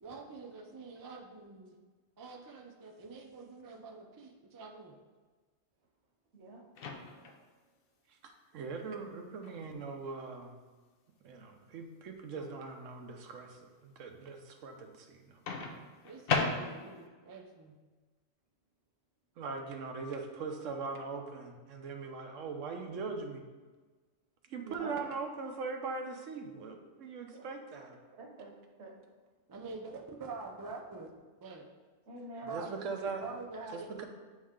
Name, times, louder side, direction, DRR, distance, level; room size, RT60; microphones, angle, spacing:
voice 1, 0.0-1.8 2.2-4.9 14.2-14.3 16.0-17.8 29.5-31.1 31.4-31.7 32.5-32.7 33.2-34.0, right 3 dB, 35° right, 1 dB, 0.3 m, -46 dB
Microwave oven, 6.7-7.4 9.4-9.6 15.5-17.1, left 4 dB, 60° left, 0.7 m, -35 dB
voice 2, 8.2-10.5 11.2-15.6 19.4-23.4 24.5-28.0 32.4-33.2 33.7-34.0, right 4 dB, 90° right, 4 dB, 1.1 m, -41 dB
voice 3, 24.6-24.9 27.3-27.5 28.1-28.9 32.1-32.5, right 2 dB, 65° right, 2 dB, 1.1 m, -47 dB
8.5 x 3.2 x 3.6 m, 1.4 s
omnidirectional pair, 1.3 m